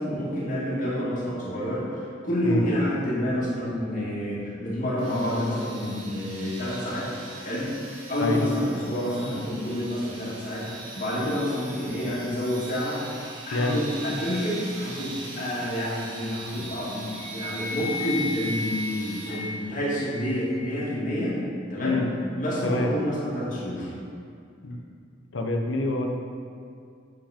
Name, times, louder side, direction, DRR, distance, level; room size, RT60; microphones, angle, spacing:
voice 1, 0.0-7.1 7.4-7.7 8.1-21.4 21.7-22.0 22.4-23.9, left 1 dB, 40° left, -7 dB, 2.1 m, -28 dB
sound 1, 5.0-19.7, right 3 dB, 80° right, 1.6 m, -41 dB
Wind instrument woodwind instrument, 17.1-20.8, left 3 dB, 25° right, 1.1 m, -35 dB
voice 2, 25.3-26.2, left 2 dB, 75° left, 3 dB, 0.8 m, -26 dB
7.8 x 5.8 x 5.1 m, 2.4 s
head